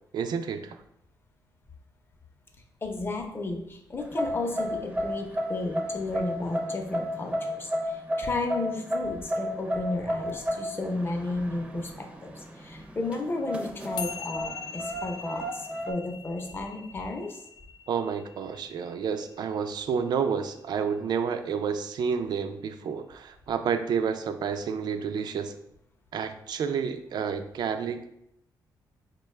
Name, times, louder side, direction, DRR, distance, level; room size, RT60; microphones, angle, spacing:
voice 1, 0.1-0.8 17.9-25.6 26.1-28.1, right 6 dB, 70° right, 9 dB, 0.4 m, -30 dB
voice 2, 2.8-11.9 12.2-17.4, left 2 dB, 30° left, 3 dB, 0.7 m, -33 dB
sound 1, 4.0-15.9, equal, 15° right, 0.5 m, -32 dB
sound 2, 14.0-20.5, left 6 dB, 70° left, 0.4 m, -42 dB
4.5 x 2.2 x 3.1 m, 0.78 s
cardioid pair, 100°, 8 cm